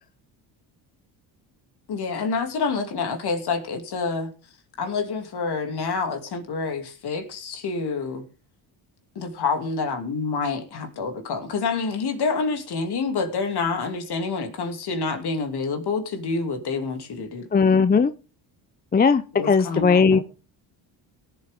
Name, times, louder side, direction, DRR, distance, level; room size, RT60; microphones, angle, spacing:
voice 1, 1.9-4.3 4.8-8.3 9.1-17.5 19.3-20.2, left 4 dB, 55° left, 5 dB, 2.8 m, -27 dB
voice 2, 17.5-18.1 18.9-20.2, left 5 dB, 20° left, 12 dB, 0.6 m, -18 dB
18.0 x 7.9 x 3.7 m, 0.34 s
supercardioid pair, 80°, 45 cm